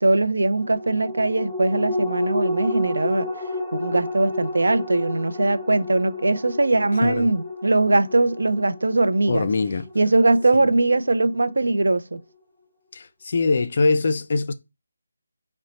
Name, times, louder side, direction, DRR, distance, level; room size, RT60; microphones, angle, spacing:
voice 1, 0.0-3.3 3.7-9.5 10.0-12.2, right 2 dB, 90° right, 0.4 m, -21 dB
sound 1, 0.6-11.4 11.8-11.9, left 2 dB, ahead, 0.8 m, -31 dB
voice 2, 9.3-9.8 10.5-10.7 12.9-14.5, left 3 dB, 35° left, 0.3 m, -23 dB
4.1 x 2.1 x 3.9 m
figure-of-eight pair, 175°, 0 cm